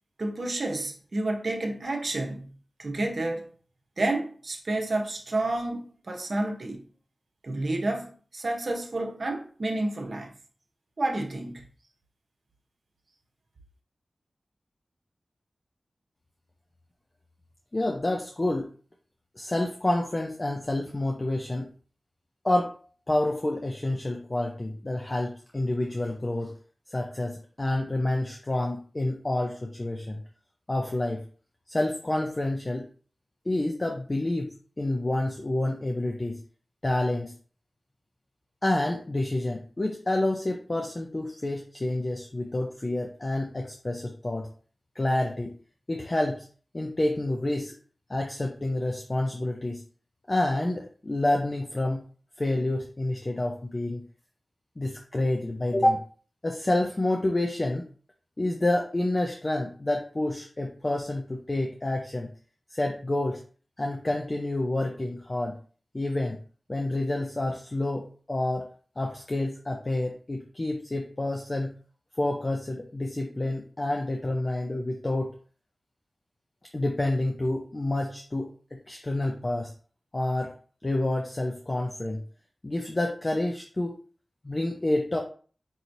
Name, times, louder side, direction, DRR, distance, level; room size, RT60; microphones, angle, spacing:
voice 1, 0.2-3.5 4.0-6.8 7.4-10.3 11.0-11.7, right 2 dB, 65° right, 0.9 m, -30 dB
voice 2, 17.7-18.7 19.4-21.7 22.4-22.8 23.1-26.5 26.9-30.2 30.7-31.2 31.7-32.9 33.5-36.4 36.8-37.3 38.6-44.5 45.0-45.5 45.9-46.4 46.7-47.7 48.1-49.8 50.3-52.0 52.4-54.0 54.8-56.1 56.4-57.9 58.4-62.3 62.7-63.4 63.8-65.6 65.9-66.4 66.7-68.7 69.0-71.7 72.2-75.3 76.7-79.7 80.1-80.5 80.8-82.2 82.6-84.0 84.4-85.2, left 1 dB, 40° left, 0.6 m, -28 dB
5.5 x 3.0 x 2.7 m
cardioid pair, 45°, 0 cm